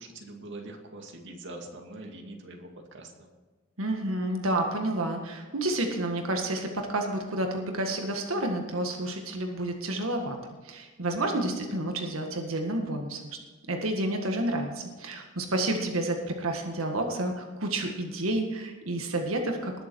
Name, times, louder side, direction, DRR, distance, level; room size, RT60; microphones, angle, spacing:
voice 1, 0.0-3.3, right 2 dB, 60° right, 2 dB, 2.3 m, -43 dB
voice 2, 3.8-10.4 10.6-13.2 13.7-19.8, right 1 dB, 85° right, 3 dB, 1.7 m, -30 dB
20.5 x 7.2 x 4.6 m, 1.3 s
head